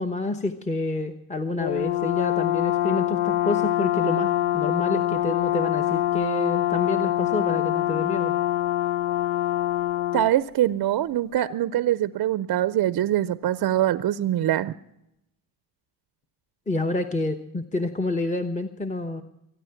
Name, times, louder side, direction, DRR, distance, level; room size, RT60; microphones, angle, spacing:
voice 1, 0.0-8.3 16.7-19.2, left 2 dB, 15° left, 6 dB, 1.0 m, -28 dB
Brass instrument, 1.6-10.3, left 14 dB, 70° left, 0.8 m, -24 dB
voice 2, 10.1-14.7, right 12 dB, 45° right, 15 dB, 0.6 m, -23 dB
23.5 x 9.7 x 5.8 m, 0.83 s
supercardioid pair, 75°, 49 cm